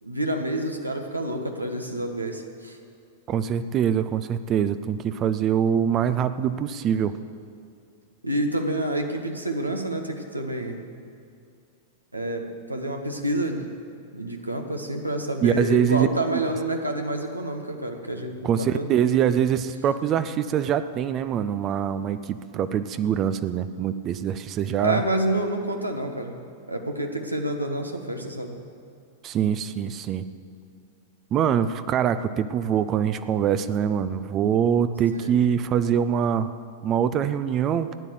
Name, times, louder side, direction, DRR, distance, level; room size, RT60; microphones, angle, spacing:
voice 1, 0.0-2.8 8.2-10.8 12.1-13.7 14.1-18.9 24.8-26.4 26.7-28.6 35.2-35.3, right 1 dB, 90° right, 3 dB, 1.4 m, -28 dB
voice 2, 3.3-7.1 15.4-16.1 16.3-16.4 18.4-25.0 29.2-30.3 31.3-36.5 36.8-37.9, right 8 dB, 30° right, 12 dB, 0.6 m, -24 dB
15.0 x 10.0 x 7.9 m, 2.4 s
figure-of-eight pair, 95°, 0 cm